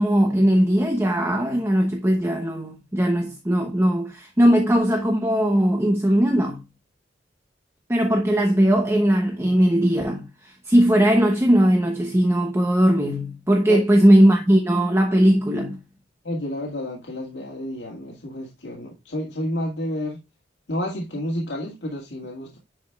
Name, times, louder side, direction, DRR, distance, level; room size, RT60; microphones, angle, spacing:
voice 1, 0.0-6.6 7.9-15.8, equal, 15° right, 0.9 m, -19 dB
voice 2, 16.2-20.2 20.7-22.6, left 1 dB, 80° left, 1.9 m, -30 dB
10.0 x 5.1 x 2.3 m
head